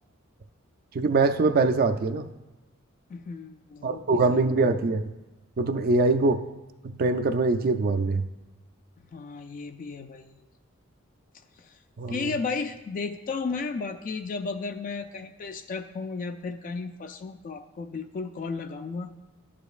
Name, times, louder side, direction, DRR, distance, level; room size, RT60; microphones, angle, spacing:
voice 1, 0.9-2.3 3.8-5.1 5.6-6.4 6.8-8.2 12.0-12.3, right 3 dB, 45° right, 9 dB, 0.4 m, -23 dB
voice 2, 3.1-4.2 9.1-10.3 11.6-11.7 12.1-19.1, left 4 dB, 40° left, 8 dB, 0.3 m, -34 dB
11.5 x 5.0 x 2.4 m, 1.1 s
head